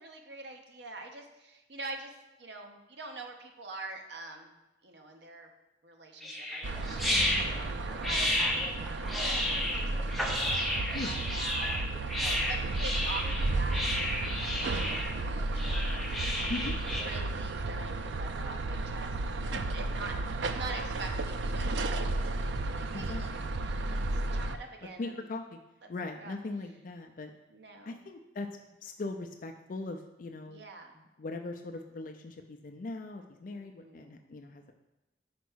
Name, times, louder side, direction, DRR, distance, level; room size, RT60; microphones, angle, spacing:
voice 1, 0.0-4.6 4.8-5.5 5.8-13.8 14.4-14.7 15.2-16.7 17.0-23.3 23.9-25.3 26.2-26.3 27.5-28.0 30.4-31.0 33.5-34.2, right 3 dB, 75° right, 3 dB, 0.9 m, -45 dB
sound 1, 6.2-17.2, left 1 dB, ahead, 0.7 m, -32 dB
sound 2, 6.6-24.6, right 2 dB, 90° right, 0.4 m, -33 dB
voice 2, 25.0-25.6 25.9-27.3 27.8-28.5 28.8-30.6 31.0-34.7, left 2 dB, 50° left, 5 dB, 0.4 m, -40 dB
5.1 x 4.6 x 6.1 m, 0.98 s
head